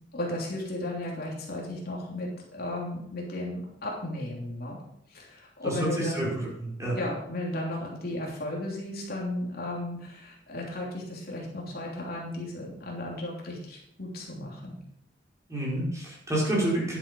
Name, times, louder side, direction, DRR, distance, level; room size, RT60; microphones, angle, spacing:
voice 1, 0.1-4.8 5.1-6.2 6.9-14.8, left 1 dB, 55° left, -3 dB, 3.2 m, -35 dB
voice 2, 5.6-7.0 15.5-17.0, right 1 dB, 15° right, -5 dB, 5.1 m, -29 dB
11.5 x 8.6 x 5.4 m, 0.73 s
head